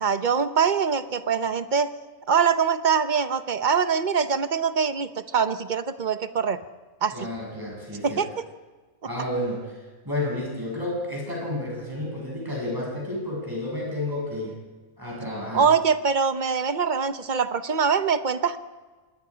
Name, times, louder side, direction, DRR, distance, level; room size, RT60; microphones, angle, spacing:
voice 1, 0.0-1.9 2.3-6.6 7.0-7.3 8.0-8.3 15.5-18.6, right 6 dB, 40° right, 11 dB, 0.8 m, -23 dB
voice 2, 7.1-8.2 9.0-9.8 10.0-14.6 15.0-15.6, left 1 dB, 15° right, -3 dB, 7.7 m, -31 dB
26.5 x 20.0 x 5.1 m, 1.3 s
omnidirectional pair, 1.6 m